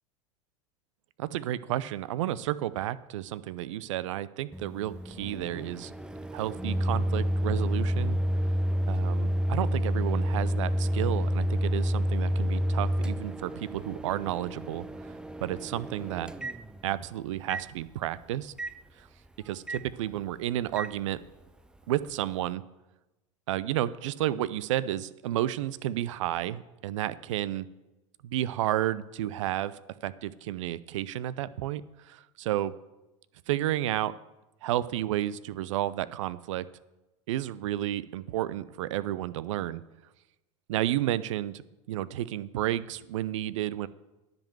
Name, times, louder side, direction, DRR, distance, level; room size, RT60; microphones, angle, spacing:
voice 1, 1.2-5.9 6.3-8.2 8.9-14.9 15.4-16.3 16.8-18.5 19.0-19.1 19.5-21.2 21.9-22.6 23.5-27.7 28.2-32.7 33.5-34.2 34.6-36.7 37.3-39.8 40.7-41.6 41.9-43.9, right 13 dB, 70° right, 18 dB, 0.4 m, -31 dB
Microwave oven, 4.5-17.1 17.5-17.7 18.6-18.7 19.7-19.8 20.8-20.9, equal, 5° right, 0.4 m, -29 dB
10.5 x 5.2 x 7.6 m, 1.0 s
hypercardioid pair, 90°, 17 cm